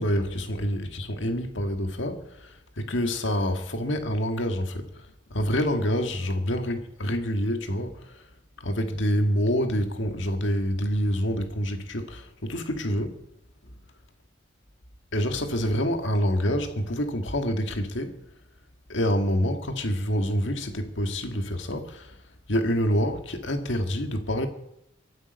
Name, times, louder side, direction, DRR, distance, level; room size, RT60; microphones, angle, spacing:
voice 1, 0.0-5.0 5.3-8.2 8.6-13.2 15.1-18.2 18.9-22.1 22.5-24.5, equal, 65° left, 1.9 m, -27 dB
24.0 x 8.9 x 5.3 m
head